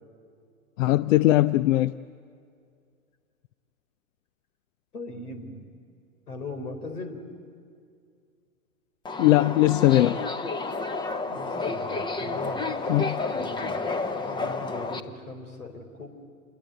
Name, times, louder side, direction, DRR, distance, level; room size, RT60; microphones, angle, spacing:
voice 1, 0.8-2.0 9.2-10.2 12.9-13.2, left 16 dB, 60° left, 17 dB, 0.6 m, -20 dB
voice 2, 4.9-5.7 6.3-7.2 11.3-12.7 13.3-16.1, left 2 dB, 85° left, 8 dB, 3.9 m, -39 dB
Subway metro underground, 9.1-15.0, left 3 dB, 10° left, 0.8 m, -30 dB
27.5 x 21.0 x 9.2 m, 2.3 s
hypercardioid pair, 115°, 43 cm